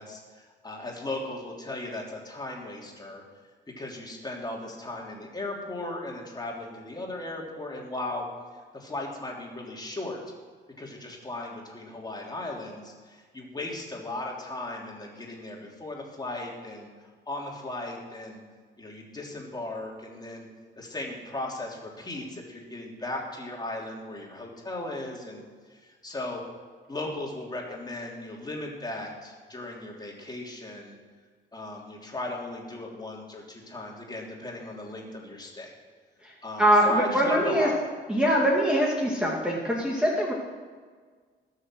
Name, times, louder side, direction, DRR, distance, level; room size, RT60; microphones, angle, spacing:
voice 1, 0.0-3.2 3.8-8.2 8.7-10.2 10.8-18.4 18.8-20.5 20.8-26.4 26.9-31.0 31.5-35.7 36.4-37.8, left 2 dB, 20° left, -1 dB, 3.3 m, -37 dB
voice 2, 36.6-37.7 38.1-40.3, equal, 5° right, -3 dB, 2.3 m, -23 dB
19.0 x 6.8 x 6.3 m, 1.5 s
cardioid pair, 90°, 20 cm